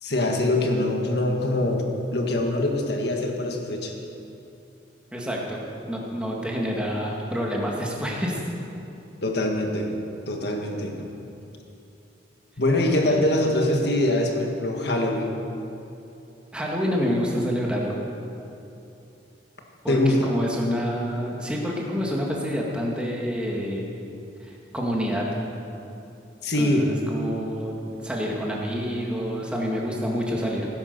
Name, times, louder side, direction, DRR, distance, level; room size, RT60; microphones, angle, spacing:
voice 1, 0.0-3.9 9.2-9.9 10.3-11.1 12.6-15.4 19.9-20.3 26.4-26.9, left 1 dB, 60° left, 2 dB, 1.8 m, -23 dB
voice 2, 5.1-5.6 5.8-8.4 13.0-13.2 16.5-18.0 19.8-23.9 24.4-25.3 26.6-30.7, equal, 5° right, -3 dB, 2.1 m, -28 dB
17.0 x 10.0 x 6.8 m, 2.8 s
head